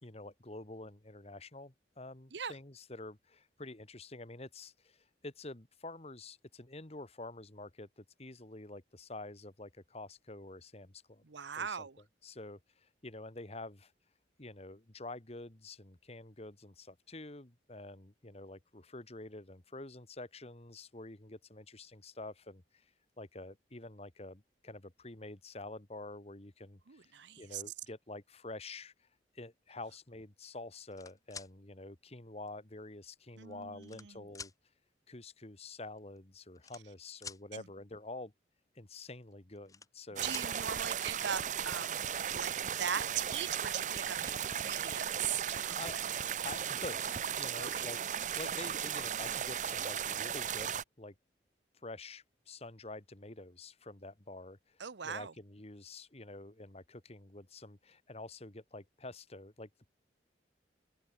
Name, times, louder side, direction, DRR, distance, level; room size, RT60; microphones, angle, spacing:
voice 1, 0.0-11.2 11.6-11.8 12.2-13.9 14.4-22.9 23.2-27.1 27.4-29.1 29.3-34.5 35.1-38.3 38.7-40.3 45.6-46.0 46.4-51.1 51.8-59.9, left 2 dB, 35° left, 1.7 m, -48 dB
voice 2, 11.2-12.0 26.9-27.6 33.4-34.3 37.5-37.7 40.2-42.0 42.3-46.0 47.6-47.8 54.8-55.3, right 8 dB, 80° right, 0.9 m, -40 dB
sound 1, 30.7-31.5 32.5-32.6 33.4-34.1 34.3-34.5 35.7-35.8 36.0-36.2 36.5-37.4 39.3-40.0 40.3-40.5 42.0-42.1 42.4-42.8, left 5 dB, 20° left, 1.6 m, -48 dB
sound 2, 40.2-50.8, right 8 dB, 45° right, 0.6 m, -36 dB
head